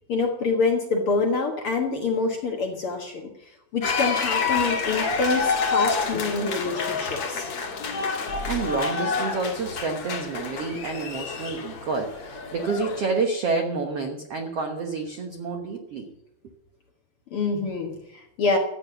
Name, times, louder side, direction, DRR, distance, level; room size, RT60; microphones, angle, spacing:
voice 1, 0.1-3.3 3.7-7.5 17.3-18.6, left 4 dB, 65° left, 2 dB, 1.3 m, -26 dB
sound 1, 3.8-13.1, left 4 dB, 45° left, 2.1 m, -28 dB
voice 2, 8.5-16.1, right 4 dB, 90° right, 3 dB, 1.3 m, -29 dB
14.0 x 9.0 x 6.9 m, 0.86 s
omnidirectional pair, 4.8 m